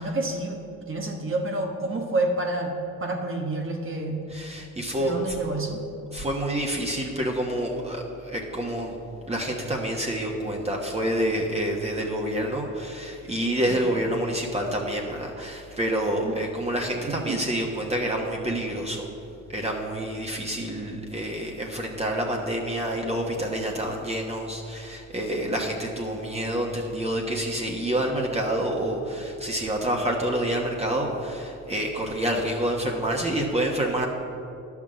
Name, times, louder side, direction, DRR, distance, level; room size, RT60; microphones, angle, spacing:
voice 1, 0.0-4.2 4.9-5.8 13.2-13.3 13.7-14.1 16.2-16.4 17.1-17.4, right 2 dB, 45° right, 2 dB, 1.2 m, -29 dB
voice 2, 4.3-5.1 6.1-9.0 9.3-19.1 19.5-34.1, right 1 dB, 20° right, 0 dB, 1.3 m, -28 dB
10.5 x 6.1 x 7.7 m, 2.7 s
cardioid pair, 90°, 30 cm